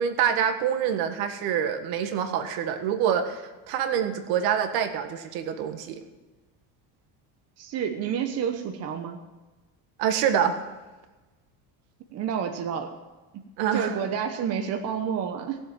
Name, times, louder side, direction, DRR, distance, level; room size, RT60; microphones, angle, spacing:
voice 1, 0.0-3.4 3.7-6.0 10.0-10.6 13.6-14.0, right 8 dB, 75° right, 7 dB, 1.7 m, -26 dB
voice 2, 7.6-9.2 12.1-12.9 13.3-13.4 13.7-15.6, right 8 dB, 40° right, 5 dB, 1.1 m, -29 dB
17.0 x 7.5 x 9.0 m, 1.2 s
cardioid pair, 165°, 38 cm